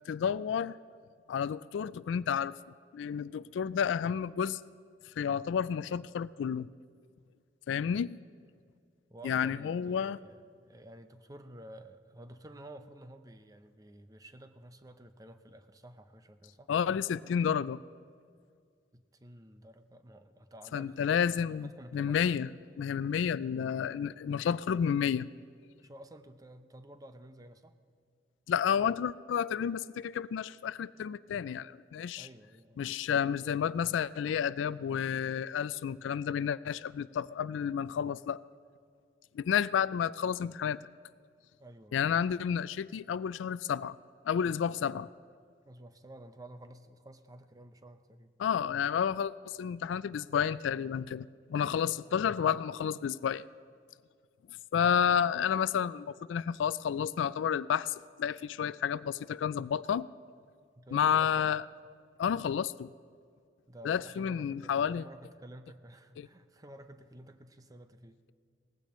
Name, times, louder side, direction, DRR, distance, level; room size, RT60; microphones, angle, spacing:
voice 1, 0.1-0.8 1.3-2.5 2.9-4.6 5.2-6.7 7.7-8.2 9.2-10.2 16.7-17.8 20.7-22.5 22.8-25.3 28.5-32.3 32.8-38.4 39.3-40.8 41.9-43.9 44.3-45.1 48.4-53.5 54.7-60.1 60.9-61.6 62.2-62.9 63.8-65.0 66.2-66.3, left 8 dB, 85° left, 18 dB, 0.3 m, -31 dB
voice 2, 9.1-16.7 18.9-22.2 25.8-27.7 32.2-32.9 41.6-42.1 45.6-48.3 51.6-51.8 60.7-61.5 63.7-68.2, right 1 dB, 20° right, 9 dB, 0.6 m, -52 dB
19.0 x 15.5 x 3.1 m, 2.1 s
head